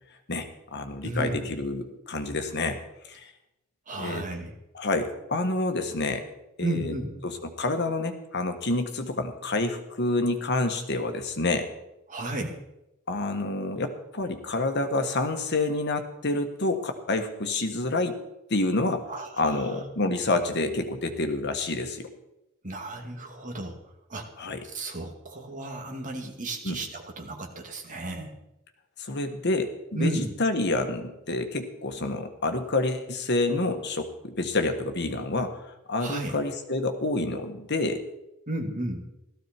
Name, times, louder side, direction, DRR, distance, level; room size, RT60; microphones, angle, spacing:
voice 1, 0.3-2.8 3.0-3.3 4.0-4.2 4.7-6.2 6.6-6.9 7.2-11.7 13.1-18.2 18.5-19.0 19.4-22.1 24.4-24.6 26.6-26.8 29.0-38.0, left 2 dB, 55° left, 7 dB, 1.6 m, -28 dB
voice 2, 1.0-1.5 3.9-4.6 6.6-7.1 12.1-12.6 19.1-19.9 22.6-23.8 24.1-28.3 29.9-30.3 36.0-36.4 38.5-39.0, right 1 dB, 40° right, 2 dB, 2.4 m, -33 dB
16.5 x 14.0 x 4.5 m, 0.90 s
head